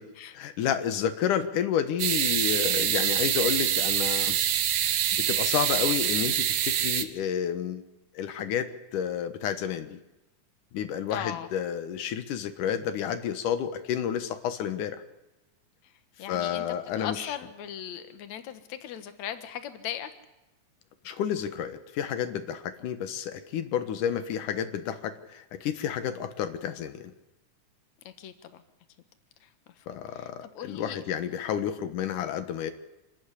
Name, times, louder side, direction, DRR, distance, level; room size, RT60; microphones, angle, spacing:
voice 1, 0.3-4.4 5.1-7.8 8.1-10.0 10.7-15.0 16.3-17.4 21.0-27.1 29.9-32.7, left 9 dB, 90° left, 10 dB, 2.8 m, -30 dB
sound 1, 2.0-7.0, right 10 dB, 80° right, 2.8 m, -25 dB
voice 2, 11.1-11.5 16.2-20.1 28.0-28.6 29.4-29.5 29.9-31.0, left 10 dB, 65° left, 10 dB, 2.7 m, -38 dB
27.0 x 14.0 x 9.9 m, 0.98 s
omnidirectional pair, 3.5 m